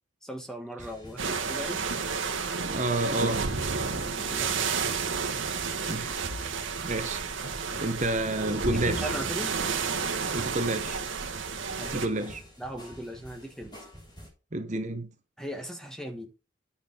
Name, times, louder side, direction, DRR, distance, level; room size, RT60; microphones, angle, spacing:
voice 1, 0.2-1.8 3.9-4.9 8.6-9.6 11.8-12.1 12.6-13.8 15.4-16.3, equal, 5° left, 1.2 m, -38 dB
sound 1, 0.8-14.3, equal, 20° left, 4.0 m, -49 dB
sound 2, 1.2-12.1, right 5 dB, 65° right, 1.3 m, -31 dB
voice 2, 2.6-3.4 5.9-6.6 6.8-7.2 7.8-9.1 10.3-11.0 11.9-12.4 14.5-15.1, right 2 dB, 35° right, 1.0 m, -30 dB
9.3 x 5.7 x 5.6 m
head